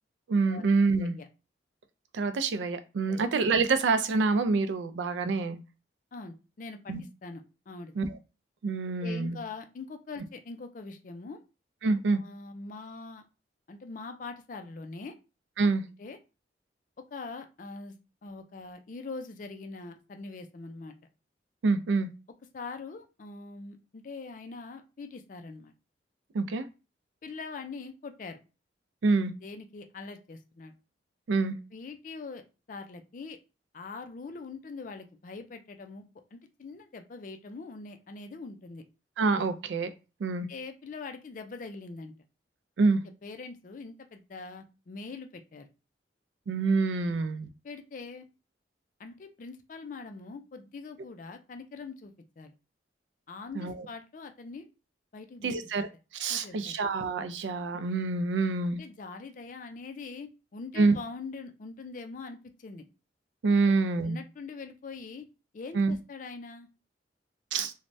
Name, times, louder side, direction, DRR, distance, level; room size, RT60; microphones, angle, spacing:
voice 1, 0.3-1.1 2.1-5.6 6.9-7.0 8.0-8.1 8.6-9.4 11.8-12.2 15.6-15.8 21.6-22.1 26.3-26.6 29.0-29.3 31.3-31.6 39.2-39.9 40.2-40.5 42.8-43.0 46.5-47.5 53.6-53.8 55.4-55.9 56.1-58.8 60.8-61.0 63.4-64.2 65.7-65.9 67.5-67.7, right 4 dB, 85° right, 0.4 m, -26 dB
voice 2, 1.0-1.3 3.1-3.2 6.1-6.9 7.2-7.9 9.0-11.4 12.1-13.3 13.7-15.1 16.0-16.2 17.0-18.0 18.2-21.0 22.5-25.7 27.2-28.4 29.4-30.7 31.7-33.4 33.7-36.1 36.3-38.8 40.5-42.1 43.2-45.7 47.1-47.3 47.6-48.3 49.0-52.5 53.3-54.7 55.1-55.6 56.3-56.8 58.7-62.8 63.6-63.7 64.0-65.3 65.5-66.7, left 4 dB, 45° left, 0.4 m, -43 dB
3.2 x 2.1 x 2.6 m
head